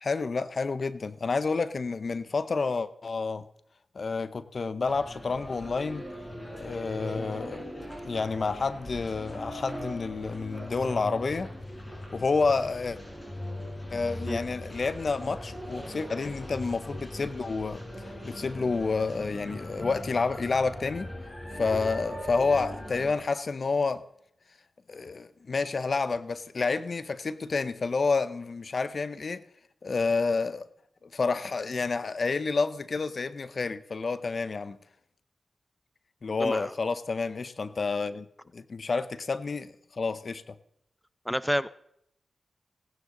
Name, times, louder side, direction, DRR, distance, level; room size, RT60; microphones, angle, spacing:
voice 1, 0.0-3.4 3.9-6.1 6.5-7.6 8.0-11.5 12.1-13.0 13.9-21.1 21.5-24.0 24.9-29.4 29.8-30.7 31.0-34.8 36.2-38.3 38.5-40.6, left 4 dB, 60° left, 0.6 m, -29 dB
sound 1, 4.8-23.1, equal, 20° left, 4.4 m, -40 dB
voice 2, 36.4-36.7 41.3-41.7, equal, ahead, 0.5 m, -28 dB
17.5 x 9.8 x 3.8 m
cardioid pair, 45°, 0 cm